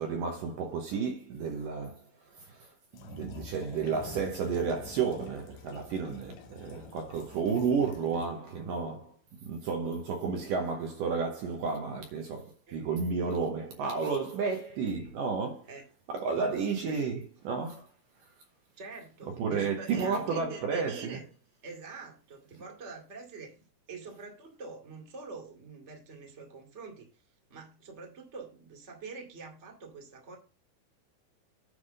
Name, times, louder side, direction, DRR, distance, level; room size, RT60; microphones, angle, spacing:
voice 1, 0.0-2.0 2.3-2.7 3.0-9.2 9.4-15.7 16.1-17.2 17.4-17.9 19.4-21.2, right 5 dB, 70° right, 2.4 m, -32 dB
sound 1, 2.9-8.3, left 4 dB, 65° left, 1.9 m, -48 dB
voice 2, 18.8-21.2 21.6-23.6 23.9-27.1 27.5-30.4, right 4 dB, 25° right, 1.8 m, -45 dB
9.8 x 3.6 x 6.7 m
omnidirectional pair, 4.4 m